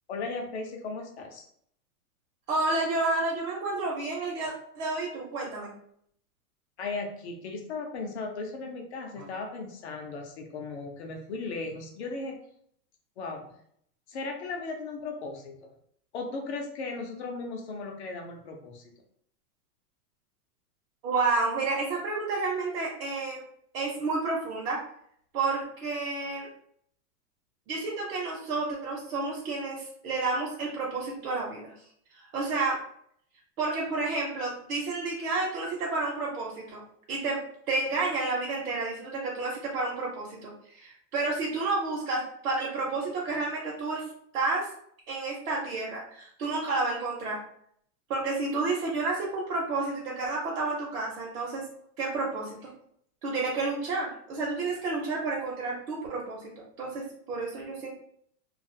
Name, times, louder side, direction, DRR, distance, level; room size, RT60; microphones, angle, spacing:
voice 1, 0.1-1.4 6.8-12.4 13.2-13.5 14.1-15.7 16.1-18.8, left 3 dB, 45° left, 2 dB, 0.6 m, -36 dB
voice 2, 2.5-5.7 9.2-9.3 21.0-23.4 23.7-24.8 25.3-26.5 27.7-31.7 32.3-32.8 33.6-36.8 37.1-37.4 37.7-44.0 44.3-44.7 45.1-47.4 48.1-51.6 52.0-52.7 53.2-57.9, right 3 dB, 65° right, -4 dB, 0.9 m, -30 dB
2.4 x 2.3 x 2.6 m, 0.67 s
supercardioid pair, 170°, 48 cm